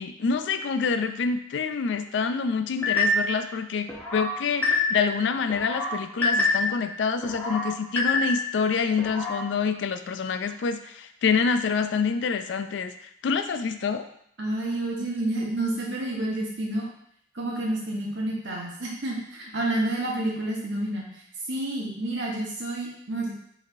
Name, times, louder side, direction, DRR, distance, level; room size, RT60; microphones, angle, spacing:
voice 1, 0.0-12.9 13.2-14.0, left 5 dB, 80° left, 9 dB, 0.3 m, -27 dB
sound 1, 2.8-3.4 3.9-5.1 5.5-6.8 7.2-8.6 9.0-9.5, left 2 dB, 10° left, 0.7 m, -26 dB
voice 2, 14.4-16.9 17.3-21.1 21.5-23.3, right 1 dB, 80° right, -3 dB, 1.1 m, -29 dB
5.1 x 3.2 x 2.5 m, 0.70 s
head